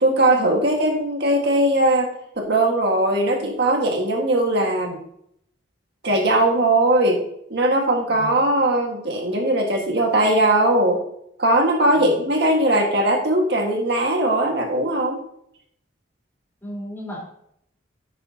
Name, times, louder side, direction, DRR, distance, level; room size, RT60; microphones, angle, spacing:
voice 1, 0.0-2.1 2.4-5.0 6.0-7.2 7.5-11.0 11.4-15.2, right 1 dB, 55° right, 2 dB, 1.6 m, -19 dB
voice 2, 16.6-17.2, equal, 10° left, -5 dB, 3.8 m, -34 dB
10.5 x 9.2 x 2.8 m, 0.71 s
head